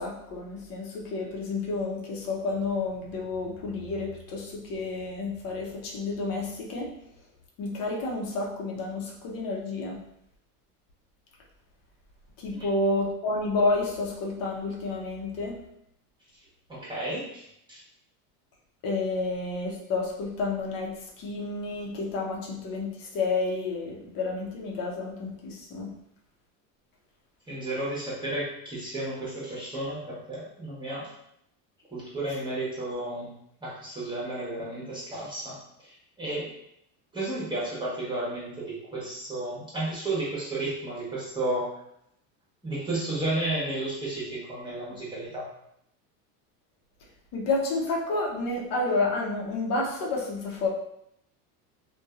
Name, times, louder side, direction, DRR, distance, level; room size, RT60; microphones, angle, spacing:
voice 1, 0.0-6.9 7.6-10.0 12.4-15.6 18.8-25.9 47.3-50.7, left 3 dB, 45° left, -2 dB, 0.8 m, -30 dB
voice 2, 16.7-17.8 27.5-31.1 31.9-33.3 33.6-36.5 37.1-41.8 42.6-45.5, right 2 dB, 10° right, -7 dB, 1.1 m, -33 dB
2.5 x 2.2 x 2.4 m, 0.76 s
hypercardioid pair, 90°, 47 cm